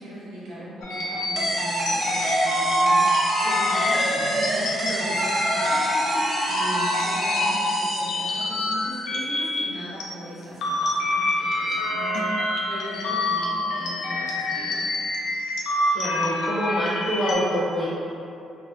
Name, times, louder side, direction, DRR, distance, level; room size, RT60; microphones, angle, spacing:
voice 1, 0.0-3.0 3.4-15.0, right 1 dB, 85° right, -9 dB, 0.7 m, -38 dB
sound 1, 0.8-10.1 10.4-17.3, left 1 dB, 75° left, 0.4 m, -26 dB
sound 2, 1.4-8.7, right 1 dB, 40° right, 0.4 m, -27 dB
voice 2, 15.9-17.9, equal, 40° left, -9 dB, 0.7 m, -25 dB
2.4 x 2.0 x 2.5 m, 2.6 s
cardioid pair, 90°, 0 cm